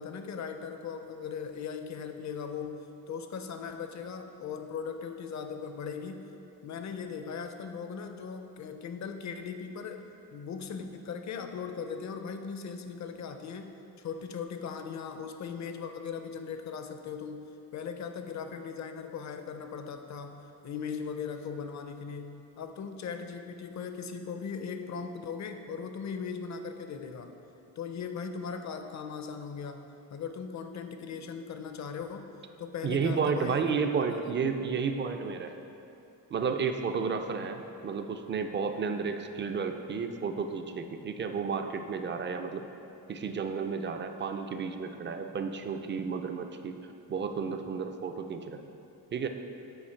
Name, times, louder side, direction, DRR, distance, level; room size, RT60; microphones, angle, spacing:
voice 1, 0.0-6.2 6.6-10.0 10.3-13.7 14.0-17.5 17.7-27.3 27.8-29.9 30.1-32.3 32.6-33.8 34.1-34.4, left 6 dB, 50° left, 6 dB, 0.5 m, -39 dB
voice 2, 32.8-35.5 36.3-42.6 43.1-46.7 47.1-48.6 49.1-49.3, right 5 dB, 30° right, 6 dB, 0.4 m, -32 dB
8.9 x 4.3 x 4.4 m, 2.7 s
wide cardioid pair, 140°, 37 cm